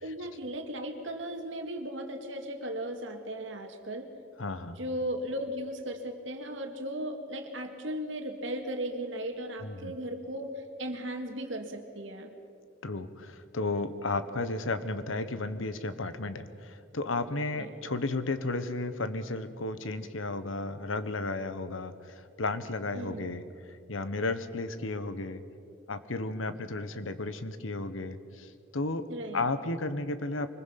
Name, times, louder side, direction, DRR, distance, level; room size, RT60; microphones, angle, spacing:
voice 1, 0.0-4.1 4.8-12.3 17.6-17.7 22.9-23.3 29.1-29.4, right 1 dB, 70° right, 4 dB, 2.2 m, -36 dB
voice 2, 4.4-4.8 9.6-9.9 12.8-25.4 25.9-29.0 29.3-30.5, left 2 dB, 85° left, 11 dB, 1.2 m, -33 dB
24.5 x 21.0 x 5.9 m, 2.5 s
head